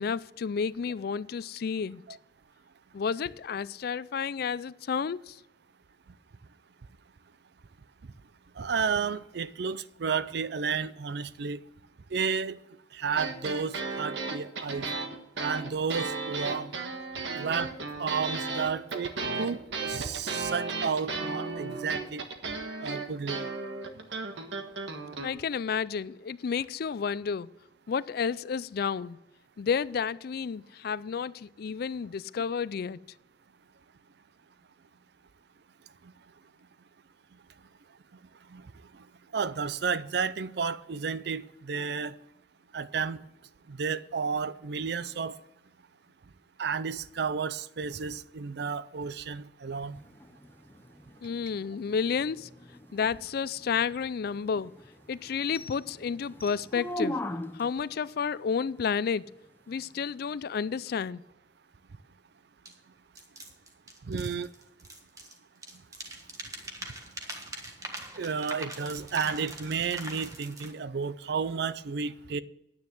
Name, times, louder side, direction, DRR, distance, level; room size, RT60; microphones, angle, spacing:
voice 1, 0.0-2.0 2.9-5.4 25.2-27.5 27.9-29.2 29.6-33.0 51.2-52.5 52.9-54.7 55.1-57.2 57.5-59.3 59.7-61.2, left 6 dB, 55° left, 0.4 m, -31 dB
voice 2, 8.6-11.6 12.1-12.6 13.0-14.9 15.4-16.7 17.3-17.7 18.0-19.1 19.4-22.2 22.8-23.4 38.5-38.6 39.3-42.1 42.7-43.2 43.7-45.3 46.6-50.0 64.1-64.5 68.2-72.4, right 5 dB, 65° right, 0.5 m, -32 dB
sound 1, 13.2-25.3, right 3 dB, 80° right, 1.5 m, -35 dB
sound 2, 49.9-57.8 60.9-61.0, left 1 dB, 10° left, 0.6 m, -40 dB
sound 3, 62.7-62.8 63.2-65.4 65.6-70.7, right 2 dB, 20° right, 1.4 m, -43 dB
9.6 x 9.6 x 6.0 m
head